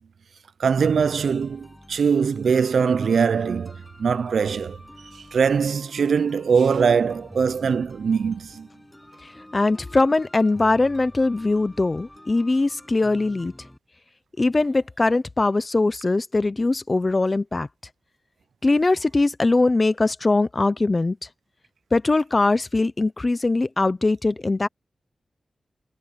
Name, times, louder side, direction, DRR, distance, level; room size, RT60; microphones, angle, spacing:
voice 1, 0.6-4.8 5.1-8.7, right 6 dB, 85° right, 0.4 m, -22 dB
sound 1, 0.8-13.8, left 1 dB, 10° left, 6.0 m, -46 dB
voice 2, 9.2-13.5 14.4-17.7 18.6-21.3 21.9-24.7, left 2 dB, 25° left, 0.5 m, -21 dB
wide cardioid pair, 160°, 0 cm